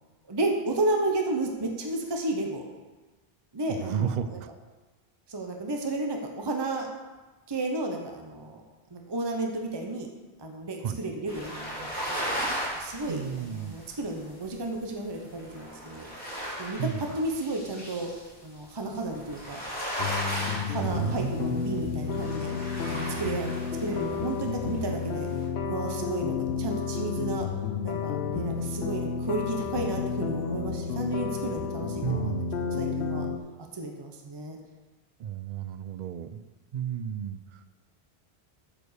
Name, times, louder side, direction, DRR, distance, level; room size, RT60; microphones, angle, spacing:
voice 1, 0.3-2.6 3.5-4.4 5.3-6.9 7.5-8.6 8.9-10.1 10.4-12.3 12.8-16.1 16.6-16.8 17.2-18.1 18.4-19.6 20.4-22.5 22.9-23.5 23.8-25.3 25.6-27.4 27.8-32.3 32.7-33.3 33.6-34.6, right 2 dB, 25° right, 2 dB, 0.9 m, -32 dB
voice 2, 3.7-4.5 10.8-11.0 13.1-13.7 16.8-17.2 20.8-21.6 32.0-32.6 35.2-36.4 36.7-37.6, right 8 dB, 55° right, 12 dB, 0.5 m, -32 dB
sound 1, 11.3-24.4 24.8-25.4, equal, 10° left, 3.0 m, -37 dB
sound 2, 20.0-33.4, left 5 dB, 75° left, 0.9 m, -31 dB
9.1 x 5.0 x 6.5 m, 1.2 s
omnidirectional pair, 1.1 m